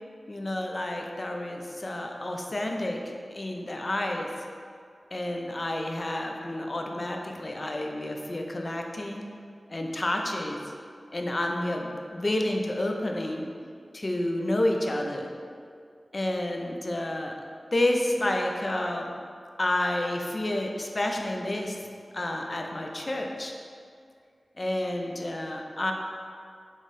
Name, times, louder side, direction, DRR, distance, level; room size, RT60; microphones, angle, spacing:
voice 1, 0.3-3.0 3.3-4.3 5.1-9.3 9.7-10.6 11.1-13.5 13.9-15.3 16.1-17.3 17.7-19.1 19.6-23.5 24.6-25.9, left 1 dB, 40° left, 2 dB, 0.4 m, -30 dB
3.7 x 3.0 x 4.0 m, 2.2 s
wide cardioid pair, 80°, 0 cm